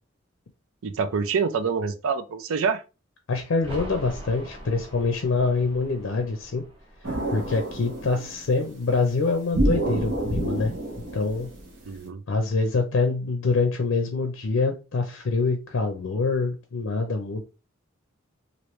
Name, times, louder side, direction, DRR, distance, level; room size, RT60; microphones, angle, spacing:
voice 1, 0.8-2.8 11.9-12.2, right 5 dB, 85° right, 0.5 m, -26 dB
voice 2, 3.3-6.6 7.1-10.7 11.1-11.5 12.3-17.4, left 3 dB, 70° left, 0.5 m, -25 dB
sound 1, 3.5-9.1 9.4-9.5, equal, 25° right, 0.9 m, -43 dB
sound 2, 7.0-8.5 9.5-12.0, right 1 dB, 65° right, 1.1 m, -28 dB
3.0 x 2.6 x 3.1 m
head